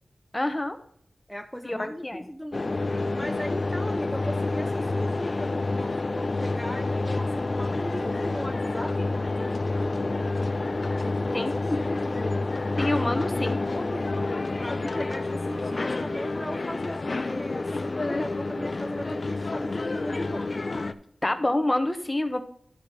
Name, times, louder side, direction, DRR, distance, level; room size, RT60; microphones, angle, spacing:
voice 1, 0.3-0.8 1.6-2.2 11.3-11.8 12.8-13.6 21.2-22.4, left 1 dB, 20° left, 8 dB, 1.0 m, -27 dB
voice 2, 1.3-10.4 11.0-13.0 13.3-14.1 14.6-20.6, equal, ahead, 2 dB, 0.5 m, -38 dB
sound 1, 2.5-20.9, left 3 dB, 45° left, 0.6 m, -28 dB
12.0 x 5.1 x 4.1 m, 0.69 s
wide cardioid pair, 105°, 0 cm